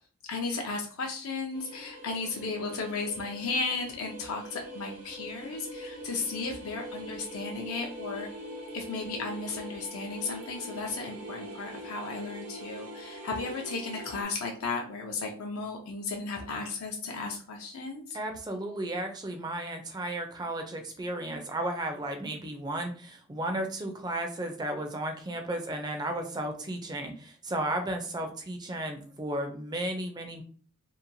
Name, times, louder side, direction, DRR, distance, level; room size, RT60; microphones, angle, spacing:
voice 1, 0.3-8.3 8.7-18.2, left 4 dB, 80° left, 1 dB, 0.5 m, -35 dB
sound 1, 1.5-14.2, right 1 dB, 85° right, 0.7 m, -43 dB
voice 2, 18.1-30.4, right 1 dB, 20° right, 4 dB, 0.4 m, -34 dB
2.8 x 2.2 x 2.6 m, 0.43 s
head